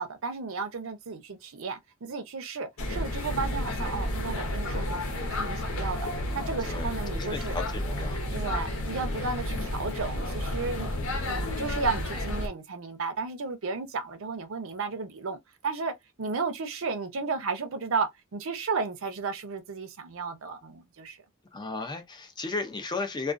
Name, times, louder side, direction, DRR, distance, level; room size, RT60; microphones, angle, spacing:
voice 1, 0.0-6.0 6.3-7.6 8.3-15.4 15.6-21.2, right 4 dB, 70° right, 0.6 m, -33 dB
sound 1, 2.8-12.5, left 1 dB, 70° left, 0.8 m, -31 dB
voice 2, 6.6-8.7 21.5-23.3, left 3 dB, 20° left, 0.5 m, -35 dB
2.3 x 2.3 x 2.4 m
head